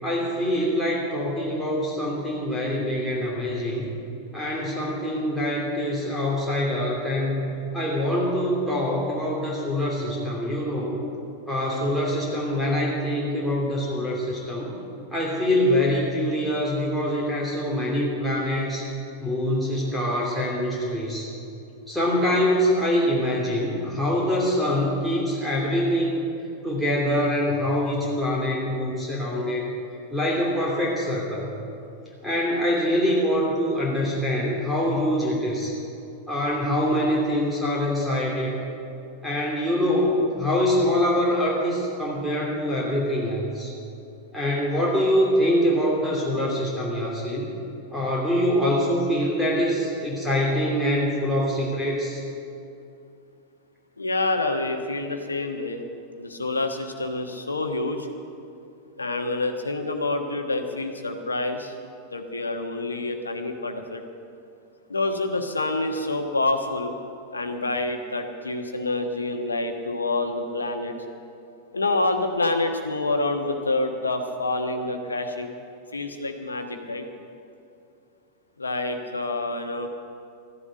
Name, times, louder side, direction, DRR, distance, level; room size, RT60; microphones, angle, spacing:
voice 1, 0.0-3.9 4.3-11.0 11.5-14.8 15.1-18.9 19.2-21.3 21.9-26.3 26.6-29.7 30.1-31.5 32.2-35.7 36.3-38.5 39.2-43.7 44.3-47.5 47.9-52.2, equal, ahead, -4 dB, 3.0 m, -24 dB
voice 2, 54.0-55.8 56.2-58.1 59.0-61.7 62.1-64.0 64.9-66.9 67.3-70.9 71.7-75.5 75.9-77.0 78.6-79.9, left 2 dB, 80° left, 5 dB, 1.3 m, -27 dB
14.0 x 11.0 x 8.0 m, 2.6 s
figure-of-eight pair, 90°, 0 cm